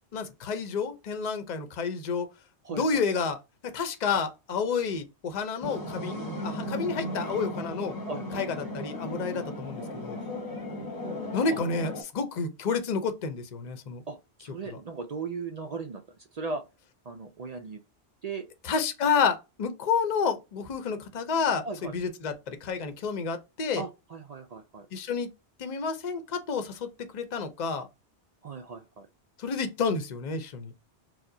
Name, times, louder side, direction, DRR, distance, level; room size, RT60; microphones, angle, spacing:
voice 1, 0.1-2.3 2.8-3.4 3.6-7.9 8.3-10.2 11.3-14.0 18.6-23.8 24.9-25.3 25.6-27.9 29.4-30.7, left 5 dB, 45° left, 0.7 m, -30 dB
voice 2, 2.6-3.1 8.0-8.5 11.5-11.6 14.1-16.0 16.3-16.6 17.1-17.8 18.2-18.5 21.6-21.9 23.8-24.9 28.4-29.1, right 4 dB, 55° right, 0.4 m, -37 dB
sound 1, 5.6-12.0, left 1 dB, 20° left, 0.9 m, -36 dB
4.7 x 2.1 x 2.6 m
omnidirectional pair, 1.2 m